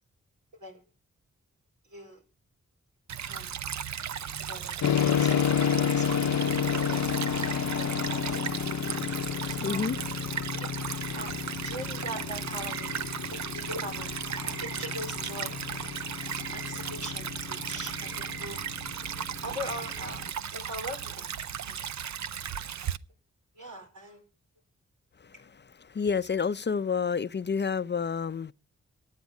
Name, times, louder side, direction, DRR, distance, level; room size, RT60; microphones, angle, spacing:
voice 1, 1.9-2.2 3.3-3.6 4.4-4.8 5.1-7.1 7.7-8.5 9.5-9.8 10.6-10.7 11.1-13.0 13.3-14.1 14.4-15.9 16.5-18.6 19.4-20.2 20.5-21.3 21.6-21.8 23.5-24.2, equal, 90° right, 4.6 m, -41 dB
Stream / Trickle dribble, 3.1-23.0, right 9 dB, 70° right, 0.6 m, -36 dB
sound 1, 4.8-20.3, left 8 dB, 75° left, 0.7 m, -31 dB
voice 2, 9.4-10.0 10.3-10.6 25.2-25.3 25.8-28.5, left 6 dB, 40° left, 0.5 m, -29 dB
sound 2, 11.0-20.1, right 4 dB, 50° right, 1.2 m, -47 dB
11.5 x 9.5 x 6.4 m
cardioid pair, 45°, 29 cm